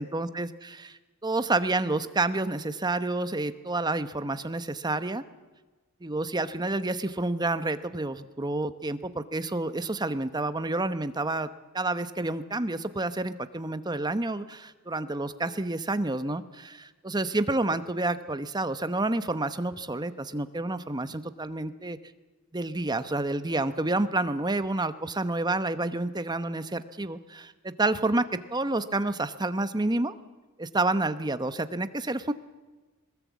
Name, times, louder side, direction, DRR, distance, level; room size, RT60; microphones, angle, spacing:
voice 1, 0.0-5.2 6.0-11.5 11.7-22.0 22.5-28.2 28.5-30.1 30.6-32.3, right 2 dB, 20° right, 11 dB, 0.9 m, -29 dB
21.5 x 20.0 x 8.3 m, 1.3 s
head